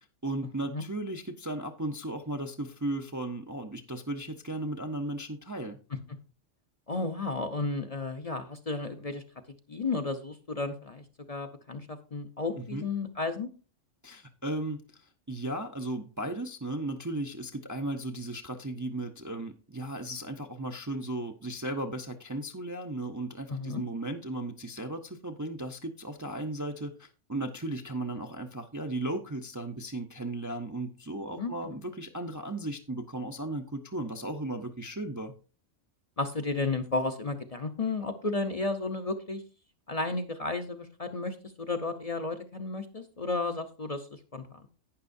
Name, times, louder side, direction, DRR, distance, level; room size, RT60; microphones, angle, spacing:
voice 1, 0.2-5.8 12.6-12.9 14.0-14.8 15.3-35.3, right 1 dB, 20° right, 4 dB, 0.5 m, -36 dB
voice 2, 6.9-9.2 9.7-13.5 23.5-23.8 31.4-31.5 36.2-39.4 39.9-44.0 44.3-44.4, left 3 dB, 35° left, 6 dB, 0.7 m, -33 dB
11.5 x 9.2 x 2.6 m, 0.35 s
omnidirectional pair, 1.2 m